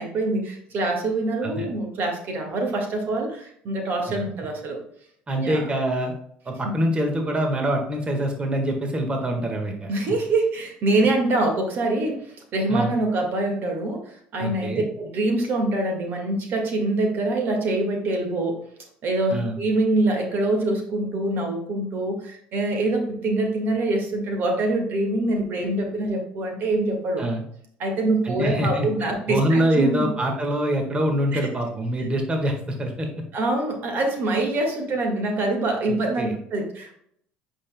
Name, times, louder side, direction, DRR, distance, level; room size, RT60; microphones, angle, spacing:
voice 1, 0.0-4.8 5.4-5.7 9.9-18.6 19.0-27.2 27.8-30.1 31.3-31.5 32.0-32.1 33.3-36.9, right 2 dB, 55° right, 3 dB, 1.7 m, -25 dB
voice 2, 5.3-6.1 6.4-9.9 12.7-12.9 14.4-14.9 19.3-19.6 27.2-27.4 28.2-28.9 29.3-33.1 36.2-36.3, right 1 dB, 25° right, 2 dB, 1.5 m, -24 dB
8.4 x 5.3 x 2.2 m, 0.67 s
supercardioid pair, 80°, 4 cm